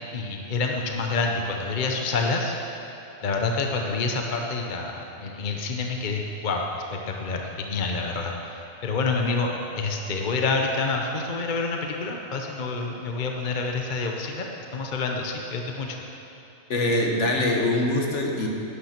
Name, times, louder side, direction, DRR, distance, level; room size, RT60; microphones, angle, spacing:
voice 1, 0.1-2.6 3.2-16.0, left 3 dB, 40° left, 2 dB, 0.9 m, -28 dB
voice 2, 16.7-18.5, left 1 dB, 65° left, 1 dB, 1.6 m, -23 dB
12.0 x 9.8 x 5.9 m, 3.0 s
omnidirectional pair, 1.4 m